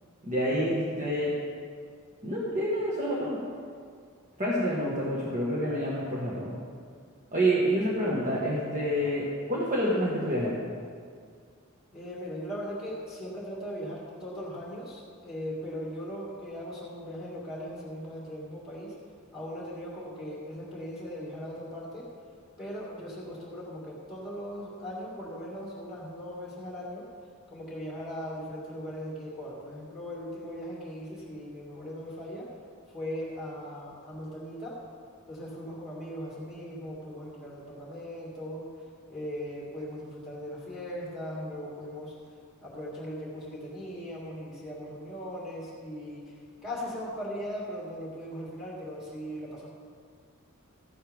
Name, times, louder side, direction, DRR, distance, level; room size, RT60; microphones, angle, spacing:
voice 1, 0.2-1.3 2.2-3.4 4.4-6.6 7.3-10.5, equal, 40° right, -6 dB, 1.6 m, -28 dB
voice 2, 11.9-18.9 19.3-22.1 22.6-27.0 27.5-32.5 32.9-34.7 35.3-38.6 39.1-42.1 42.6-46.3 46.6-49.7, equal, ahead, -6 dB, 2.4 m, -39 dB
14.0 x 11.0 x 3.6 m, 2.1 s
head